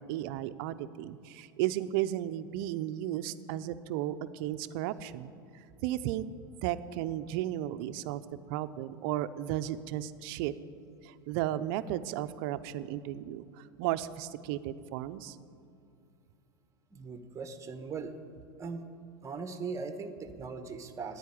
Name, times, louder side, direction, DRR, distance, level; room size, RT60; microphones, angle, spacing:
voice 1, 0.0-5.3 5.8-6.3 6.6-8.2 8.5-10.5 11.0-15.4, right 13 dB, 65° right, 12 dB, 0.6 m, -34 dB
voice 2, 16.9-18.1 18.6-18.8 19.2-21.2, right 5 dB, 25° right, 9 dB, 1.1 m, -39 dB
10.5 x 9.3 x 9.9 m, 2.5 s
supercardioid pair, 110°, 13 cm